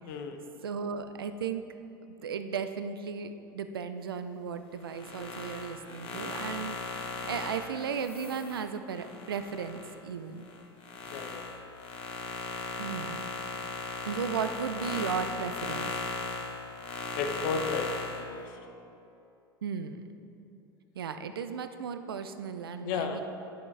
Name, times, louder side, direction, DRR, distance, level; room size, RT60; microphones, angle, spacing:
voice 1, 0.6-1.6 2.2-6.8 7.3-10.5 12.8-13.3 14.1-16.1 19.6-20.0 20.9-23.2, right 6 dB, 85° right, 9 dB, 0.4 m, -35 dB
sound 1, 4.8-9.9 10.4-18.2, left 4 dB, 50° left, 1.3 m, -37 dB
voice 2, 11.1-11.4 17.2-18.4 22.8-23.2, left 5 dB, 65° left, 6 dB, 0.8 m, -33 dB
10.5 x 7.0 x 3.3 m, 2.7 s
hypercardioid pair, 80°, 12 cm